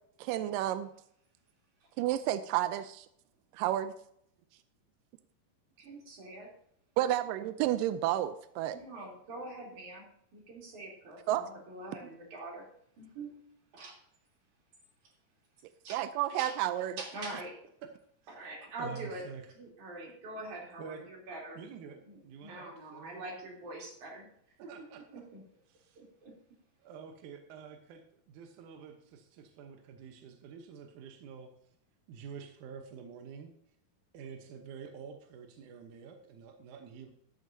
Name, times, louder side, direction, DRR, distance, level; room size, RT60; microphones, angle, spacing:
voice 1, 0.2-0.9 2.0-3.1 3.5-3.9 7.0-8.8 11.3-11.5 15.9-17.0, right 13 dB, 85° right, 12 dB, 2.0 m, -31 dB
voice 2, 5.8-6.5 8.7-10.1 10.3-12.7 13.0-13.3 13.7-13.9 15.8-16.0 16.4-16.5 17.0-17.5 18.3-19.2 19.5-21.6 22.1-24.3 24.6-25.4 26.0-26.3, right 2 dB, 50° right, -1 dB, 4.6 m, -44 dB
voice 3, 18.8-19.5 20.8-21.1 21.5-23.2 24.6-25.3 25.7-26.0 26.8-31.7 32.1-33.5 34.1-37.1, right 6 dB, 70° right, 5 dB, 2.1 m, -48 dB
12.5 x 12.5 x 2.7 m, 0.71 s
omnidirectional pair, 4.5 m